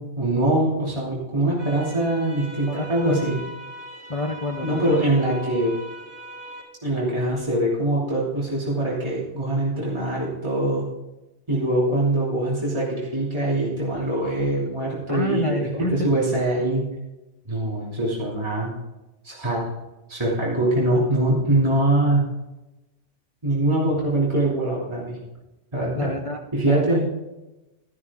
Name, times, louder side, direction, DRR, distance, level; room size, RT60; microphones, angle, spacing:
voice 1, 0.0-3.4 4.6-5.7 6.8-10.9 11.5-16.8 17.5-18.7 19.2-19.7 20.1-22.3 23.4-25.2 25.7-26.1 26.5-27.1, right 1 dB, 25° right, -6 dB, 3.0 m, -23 dB
sound 1, 1.6-6.6, equal, 65° right, 4.7 m, -39 dB
voice 2, 2.7-3.2 4.1-4.9 15.1-16.4 25.9-26.8, left 2 dB, 35° left, 3 dB, 0.7 m, -29 dB
12.5 x 12.5 x 3.7 m, 1.0 s
omnidirectional pair, 1.2 m